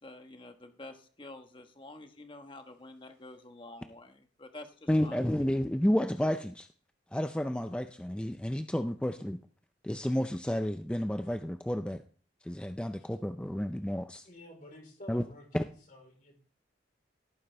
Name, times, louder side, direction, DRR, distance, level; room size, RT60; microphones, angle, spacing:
voice 1, 0.0-5.2, left 2 dB, 25° left, 6 dB, 1.2 m, -49 dB
voice 2, 4.9-6.7 7.1-9.4 9.8-12.0 12.5-14.2 15.1-15.2, equal, 5° left, 7 dB, 0.4 m, -31 dB
voice 3, 14.3-15.5 15.9-16.4, left 1 dB, 45° left, 2 dB, 3.9 m, -50 dB
17.0 x 9.3 x 3.4 m, 0.43 s
head